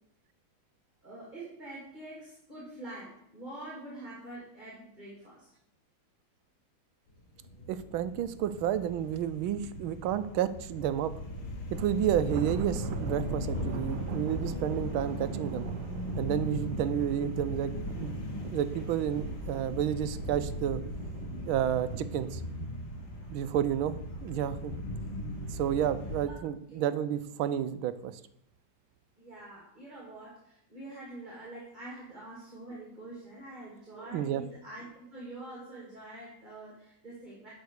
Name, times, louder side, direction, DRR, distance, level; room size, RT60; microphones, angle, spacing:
voice 1, 1.0-5.5 23.9-24.0 26.3-26.4 26.7-26.9 29.2-37.5, right 2 dB, 20° right, -5 dB, 2.7 m, -45 dB
sound 1, 7.2-26.3, left 1 dB, 70° left, 2.5 m, -38 dB
voice 2, 7.7-11.1 11.7-15.6 16.2-18.2 18.5-20.8 21.5-22.4 23.3-24.7 25.5-28.1 34.1-34.4, right 10 dB, 90° right, 13 dB, 1.5 m, -31 dB
Thunder, 11.7-25.0 25.4-25.7 26.1-26.2 27.1-27.6, right 9 dB, 70° right, 1.2 m, -43 dB
11.5 x 5.2 x 6.5 m, 0.75 s
omnidirectional pair, 2.2 m